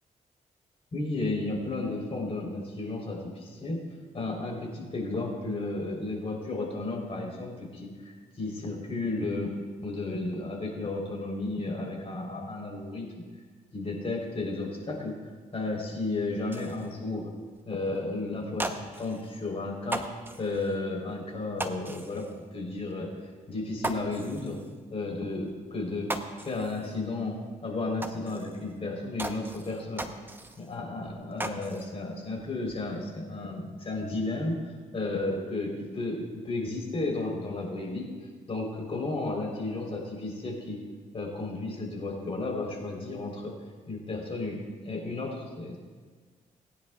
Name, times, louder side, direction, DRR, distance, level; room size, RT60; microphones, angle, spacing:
voice 1, 0.9-3.8 4.1-9.5 9.8-13.2 13.7-15.1 15.5-17.3 17.6-20.0 20.4-23.1 23.5-24.6 24.9-26.1 26.4-30.0 30.6-34.6 34.9-38.1 38.5-40.8 41.1-43.5 43.9-45.8, left 2 dB, 45° left, -1 dB, 3.9 m, -33 dB
sound 1, 16.5-16.9 17.5-17.7 17.9-18.0 18.4-19.4 19.8-20.8 21.6-22.4 22.8-22.9 23.3-23.4 23.8-24.8 25.5-25.6 25.9-27.0 27.3-27.4 28.0-28.7 29.2-30.8 31.1-31.9 32.3-32.9, right 1 dB, 15° right, 0.9 m, -38 dB
20.5 x 10.0 x 2.4 m, 1.5 s
cardioid pair, 75°, 14 cm